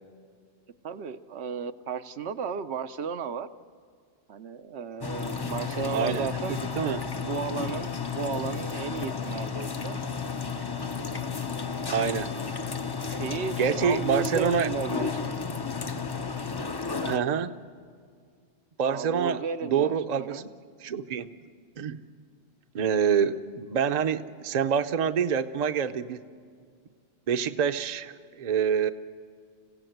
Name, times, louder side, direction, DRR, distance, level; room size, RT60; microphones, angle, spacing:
voice 1, 0.8-3.5 4.3-6.6 7.2-10.0 13.2-15.3 18.9-20.5, right 6 dB, 80° right, 9 dB, 1.0 m, -34 dB
sound 1, 5.0-17.2, left 5 dB, 30° left, 0.5 m, -33 dB
voice 2, 5.9-6.3 6.8-7.0 11.9-12.3 13.1-13.2 13.6-14.7 17.0-17.6 18.8-20.5 20.8-21.3 21.8-22.0 22.7-26.2 27.3-28.9, right 7 dB, 45° right, 10 dB, 0.7 m, -26 dB
26.5 x 16.0 x 7.9 m, 2.1 s
omnidirectional pair, 1.1 m